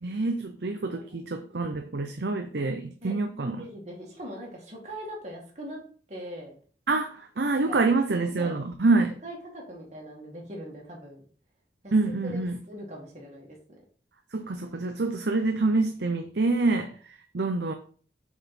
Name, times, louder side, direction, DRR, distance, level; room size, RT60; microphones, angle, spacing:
voice 1, 0.0-3.6 6.9-9.1 11.9-12.6 14.3-17.7, right 3 dB, 70° right, 0.7 m, -26 dB
voice 2, 0.9-1.2 3.0-3.1 3.6-5.8 6.1-6.5 7.5-7.8 8.4-8.6 9.2-11.2 11.8-11.9 12.7-13.8, equal, 40° right, 2.1 m, -41 dB
6.5 x 4.9 x 4.2 m
head